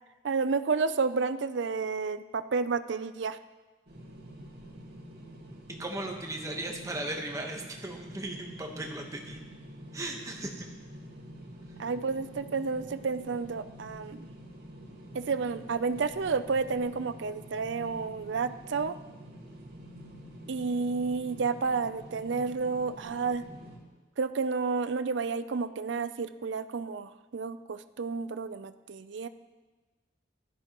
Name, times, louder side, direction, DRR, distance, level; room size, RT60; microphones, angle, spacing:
voice 1, 0.2-3.4 11.8-14.3 15.1-19.0 20.5-23.5 24.2-29.3, right 4 dB, 75° right, 12 dB, 0.5 m, -31 dB
sound 1, 3.9-23.8, equal, 55° right, 2.3 m, -47 dB
voice 2, 5.7-9.4 9.9-10.7, right 1 dB, 15° right, 2 dB, 1.1 m, -37 dB
15.5 x 12.5 x 3.0 m, 1.2 s
head